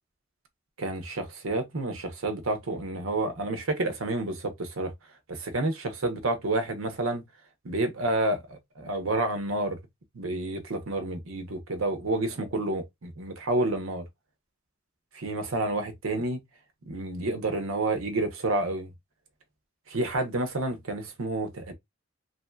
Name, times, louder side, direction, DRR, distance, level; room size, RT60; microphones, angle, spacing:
voice 1, 0.8-4.9 5.3-7.2 7.6-9.8 10.1-14.1 15.1-16.4 16.8-18.9 19.9-21.7, right 2 dB, 85° right, 0.8 m, -29 dB
3.1 x 2.6 x 2.3 m
head